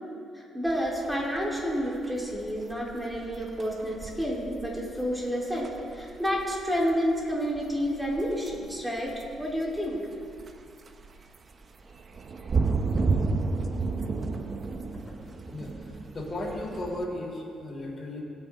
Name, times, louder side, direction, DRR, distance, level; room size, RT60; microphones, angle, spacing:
voice 1, 0.3-5.7 5.9-10.0, equal, 5° right, -4 dB, 3.8 m, -30 dB
sound 1, 0.7-17.1, right 4 dB, 40° right, 0.9 m, -33 dB
voice 2, 15.5-18.2, left 1 dB, 35° left, -4 dB, 3.6 m, -35 dB
20.0 x 9.0 x 3.8 m, 2.4 s
cardioid pair, 90°, 0 cm